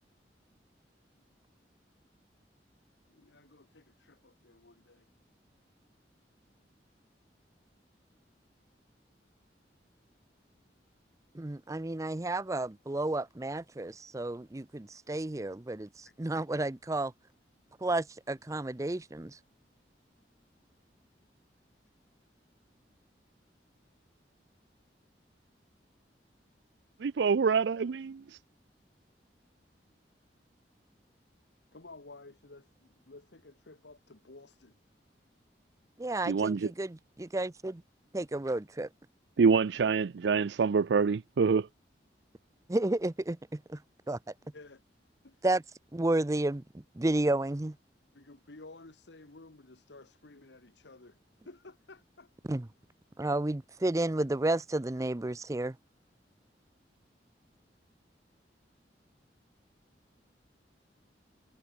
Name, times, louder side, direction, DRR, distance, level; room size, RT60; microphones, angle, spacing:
voice 1, 3.1-5.1 16.0-16.1 31.7-34.8 44.5-44.8 45.2-45.5 48.1-51.2 51.4-52.3, left 2 dB, 85° left, 1.5 m, -53 dB
voice 2, 11.3-17.1 17.8-19.4 36.0-37.8 38.1-38.9 42.7-43.8 44.1-44.2 45.4-45.6 45.9-47.8 52.5-52.7 53.2-55.8, right 2 dB, 20° right, 0.6 m, -32 dB
voice 3, 27.0-28.4 36.3-36.7 39.4-41.7, right 5 dB, 75° right, 0.4 m, -26 dB
head